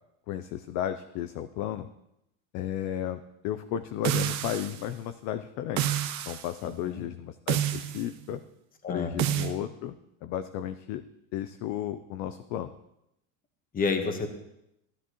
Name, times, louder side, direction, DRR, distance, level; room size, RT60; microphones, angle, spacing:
voice 1, 0.3-1.9 2.5-5.9 6.3-8.4 8.9-10.0 10.2-11.0 11.3-12.7, left 11 dB, 45° left, 10 dB, 0.5 m, -34 dB
sound 1, 4.0-4.8 5.8-6.5 7.5-8.0 9.2-9.5, right 12 dB, 40° right, 0.8 m, -28 dB
voice 2, 6.6-7.0 8.8-9.4 13.7-14.4, left 4 dB, 20° left, 6 dB, 1.2 m, -30 dB
13.5 x 13.0 x 3.0 m, 0.84 s
supercardioid pair, 140°, 42 cm